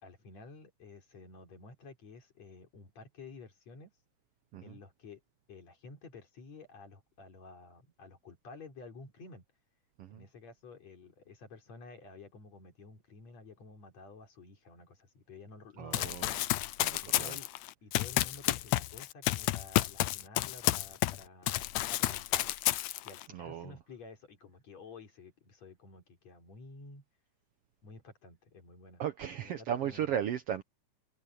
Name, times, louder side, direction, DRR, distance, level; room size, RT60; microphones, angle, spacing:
voice 1, 0.0-3.9 4.6-5.2 5.5-9.4 10.1-16.5 17.0-17.5 17.8-22.5 23.0-27.0 27.8-29.0 29.4-30.2, left 3 dB, 60° left, 4.8 m, -52 dB
voice 2, 15.8-16.3 16.8-17.4 23.3-23.8 29.0-30.6, right 9 dB, 65° right, 1.5 m, -36 dB
Run, 15.9-21.2 21.5-23.2, left 16 dB, 80° left, 1.9 m, -30 dB
omnidirectional pair, 3.5 m